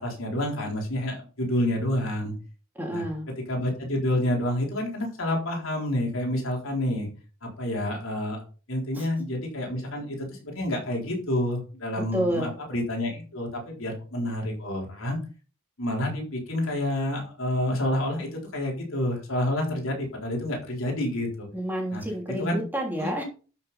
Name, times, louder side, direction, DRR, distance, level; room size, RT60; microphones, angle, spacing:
voice 1, 0.0-2.3 2.9-3.0 3.5-7.1 7.4-8.4 8.7-15.2 15.8-21.5 21.9-22.0 22.4-22.6 23.0-23.2, left 1 dB, 70° left, 0 dB, 4.1 m, -28 dB
voice 2, 2.7-3.3 8.9-9.0 12.1-12.5 21.5-23.2, equal, 10° right, -1 dB, 3.2 m, -29 dB
12.5 x 6.5 x 4.3 m, 0.36 s
head